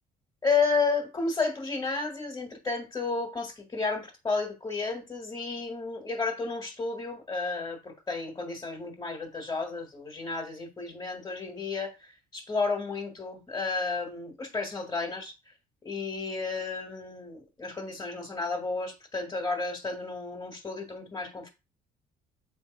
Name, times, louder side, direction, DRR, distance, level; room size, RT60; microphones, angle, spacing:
voice 1, 0.4-15.3 15.8-21.5, left 4 dB, 20° left, 1.9 m, -32 dB
7.5 x 3.6 x 5.2 m
cardioid pair, 110°, 17 cm